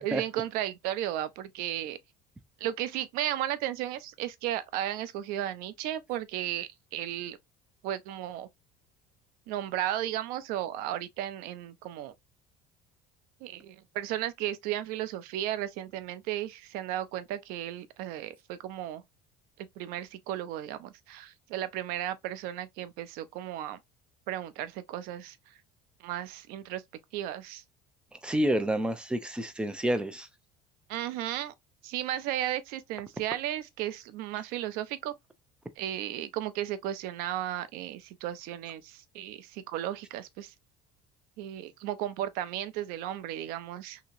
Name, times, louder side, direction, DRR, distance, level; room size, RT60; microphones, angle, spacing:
voice 1, 0.0-2.0 2.6-7.4 7.8-8.5 9.5-12.1 13.4-19.0 19.8-23.8 24.3-25.4 26.0-26.8 27.1-27.6 30.9-31.5 31.8-35.1 35.8-40.5 41.4-44.0, right 12 dB, 70° right, 0.5 m, -34 dB
voice 2, 28.2-30.3, right 1 dB, 5° right, 0.4 m, -28 dB
2.9 x 2.7 x 2.5 m
cardioid pair, 145°, 16 cm